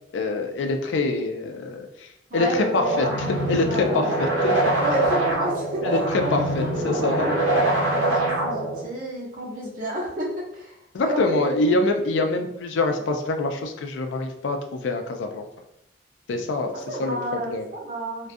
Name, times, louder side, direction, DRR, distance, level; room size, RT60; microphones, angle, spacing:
voice 1, 0.1-3.1 3.5-4.6 5.8-6.0 6.3-7.4 10.9-15.5 16.3-17.7, left 2 dB, 75° left, 5 dB, 0.4 m, -25 dB
voice 2, 2.3-4.0 4.8-5.8 6.2-11.6 12.1-12.3 16.9-18.3, right 1 dB, 45° right, -6 dB, 0.8 m, -31 dB
sound 1, 2.8-8.8, right 2 dB, 85° right, 0.8 m, -24 dB
2.3 x 2.2 x 2.5 m, 0.78 s
head